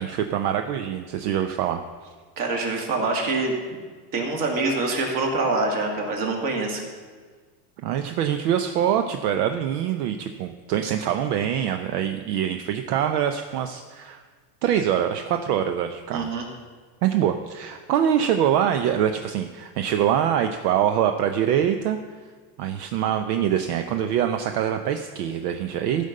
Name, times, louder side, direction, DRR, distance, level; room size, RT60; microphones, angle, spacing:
voice 1, 0.0-1.8 7.8-14.2 14.6-16.3 17.0-22.0 22.6-26.1, right 9 dB, 70° right, 7 dB, 0.8 m, -24 dB
voice 2, 2.4-3.8 4.1-6.8 16.1-16.5, right 3 dB, 40° right, 1 dB, 2.2 m, -25 dB
13.5 x 5.3 x 6.6 m, 1.5 s
supercardioid pair, 155°, 49 cm